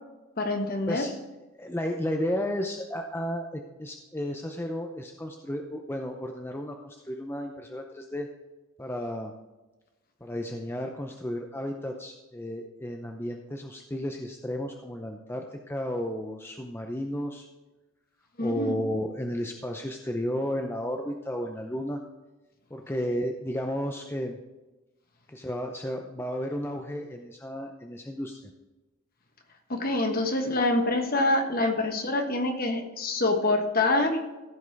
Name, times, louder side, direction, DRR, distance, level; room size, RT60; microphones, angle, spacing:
voice 1, 0.4-1.1 18.4-18.7 29.7-34.2, left 2 dB, 45° left, 4 dB, 1.4 m, -26 dB
voice 2, 1.5-8.3 8.8-9.3 10.2-17.5 18.4-22.0 22.7-24.4 25.3-28.4, equal, 10° left, 3 dB, 0.6 m, -33 dB
15.0 x 5.4 x 4.7 m, 1.1 s
head